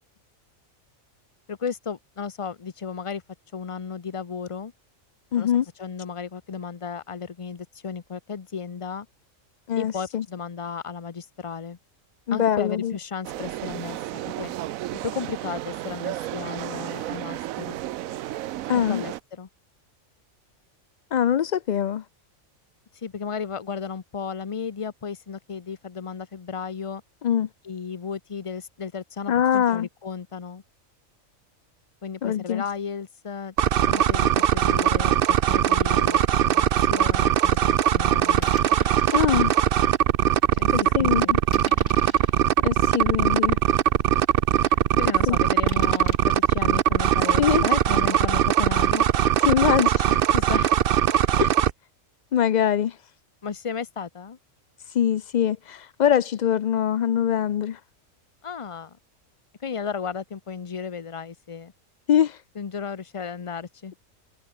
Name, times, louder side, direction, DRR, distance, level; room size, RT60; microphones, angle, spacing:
voice 1, 1.5-3.2 3.5-4.7 5.4-5.5 5.8-9.1 9.8-11.8 12.3-14.5 14.9-17.8 18.9-19.5 22.9-27.0 27.6-30.6 32.0-33.5 33.9-38.5 40.5-41.4 45.0-49.1 50.1-50.7 53.4-54.4 58.4-59.0 59.6-61.7 62.6-63.9, left 6 dB, 30° left, 0.6 m, -34 dB
voice 2, 5.3-5.6 9.7-10.2 12.3-12.9 18.7-19.0 21.1-22.0 27.2-27.5 29.3-29.9 32.2-32.6 39.1-39.6 40.7-41.4 42.6-43.6 45.3-45.4 47.4-47.6 49.5-50.2 51.4-51.5 52.3-53.0 54.9-57.8 62.1-62.4, left 9 dB, 80° left, 0.4 m, -23 dB
sound 1, 13.2-19.2, right 14 dB, 85° right, 1.0 m, -33 dB
sound 2, 33.6-51.7, right 10 dB, 55° right, 0.7 m, -20 dB
sound 3, 35.7-35.9 36.5-36.6 37.5-37.8 38.4-39.3 39.9-40.0 40.5-40.7 41.5-42.4 43.1-43.2 43.7-43.8 44.0-44.1 45.7-46.4, left 1 dB, 60° left, 7.1 m, -42 dB
omnidirectional pair, 1.4 m